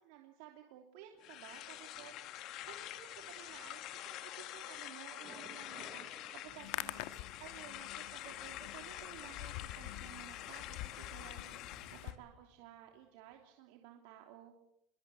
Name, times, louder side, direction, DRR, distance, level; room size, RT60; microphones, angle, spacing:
voice 1, 0.0-2.4 2.7-7.0 7.4-14.5, right 12 dB, 70° right, 3 dB, 3.2 m, -55 dB
Thunder, 1.1-13.0 13.3-13.4, equal, ahead, 6.6 m, -63 dB
sound 1, 1.2-12.2, left 14 dB, 45° left, 2.0 m, -47 dB
Hands, 6.4-12.1, left 16 dB, 70° left, 1.7 m, -47 dB
25.5 x 23.5 x 8.5 m, 0.79 s
cardioid pair, 170°, 0 cm